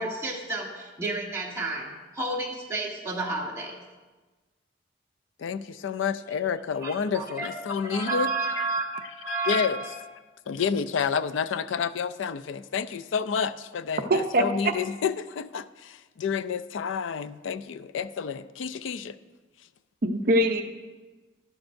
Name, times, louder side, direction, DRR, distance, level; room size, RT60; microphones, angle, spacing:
voice 1, 0.0-3.8 6.8-10.0, right 3 dB, 15° right, -3 dB, 1.4 m, -31 dB
voice 2, 5.4-8.6 9.3-9.8 10.5-19.2, left 6 dB, 85° left, 15 dB, 0.4 m, -29 dB
voice 3, 14.1-14.7 20.0-20.6, right 1 dB, 50° right, 6 dB, 0.6 m, -23 dB
12.0 x 11.5 x 2.6 m, 1.2 s
head